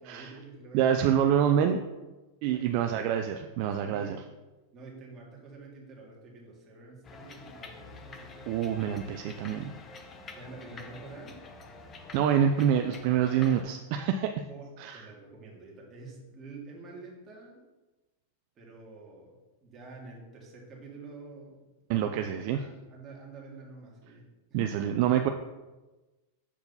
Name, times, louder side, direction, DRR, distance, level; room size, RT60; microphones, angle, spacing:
voice 1, 0.0-1.6 2.4-2.7 3.8-4.2 4.7-8.5 10.3-11.4 14.5-17.6 18.6-21.6 21.9-22.1 22.5-24.6, right 3 dB, 25° right, -2 dB, 2.0 m, -47 dB
voice 2, 0.7-1.8 2.4-4.2 8.5-9.7 12.1-14.3 14.8-15.0 21.9-22.6 24.5-25.3, right 9 dB, 50° right, 6 dB, 0.4 m, -26 dB
sound 1, 7.0-13.6, left 3 dB, 25° left, 0.7 m, -47 dB
7.1 x 4.7 x 4.0 m, 1.1 s
supercardioid pair, 135°, 0 cm